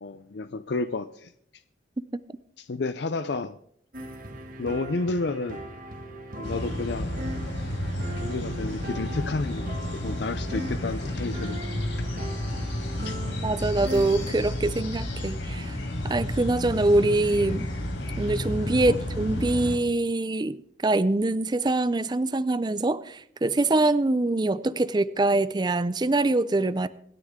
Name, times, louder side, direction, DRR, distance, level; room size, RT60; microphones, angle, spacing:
voice 1, 0.0-1.3 2.6-3.6 4.6-5.6 6.4-7.1 8.2-11.6 13.0-13.2 18.7-19.0, left 3 dB, 65° left, 12 dB, 0.5 m, -31 dB
sound 1, 3.9-14.3, right 1 dB, 45° right, 1.9 m, -39 dB
sound 2, 6.4-19.8, left 1 dB, 85° left, 4.4 m, -31 dB
voice 2, 13.4-15.8 16.0-17.7 18.2-26.9, right 2 dB, 25° right, 15 dB, 0.4 m, -24 dB
26.5 x 9.7 x 3.7 m, 0.69 s
head